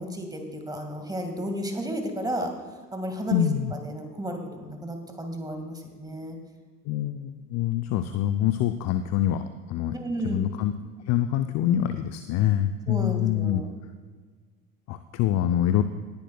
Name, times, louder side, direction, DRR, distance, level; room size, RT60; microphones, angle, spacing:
voice 1, 0.0-2.5 2.9-6.4 9.9-10.4 12.9-13.7, right 1 dB, 10° right, 4 dB, 2.0 m, -33 dB
voice 2, 3.3-3.7 6.9-10.0 10.2-10.7 11.1-13.6 14.9-15.8, left 11 dB, 40° left, 9 dB, 0.6 m, -25 dB
19.0 x 10.5 x 2.3 m, 1.5 s
figure-of-eight pair, 65°, 41 cm